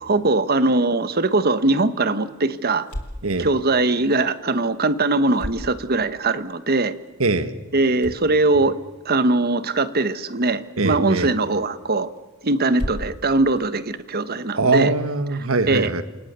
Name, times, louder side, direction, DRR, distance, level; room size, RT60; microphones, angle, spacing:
voice 1, 0.0-2.9 3.4-6.9 7.7-8.8 9.0-12.1 12.4-14.9 15.7-15.9, right 2 dB, 45° right, 12 dB, 1.3 m, -21 dB
sound 1, 1.1-14.7, equal, 85° left, 3.1 m, -40 dB
voice 2, 7.2-7.5 10.8-11.3 14.6-16.0, right 3 dB, 70° right, 11 dB, 1.7 m, -21 dB
28.5 x 28.0 x 6.9 m, 1.2 s
head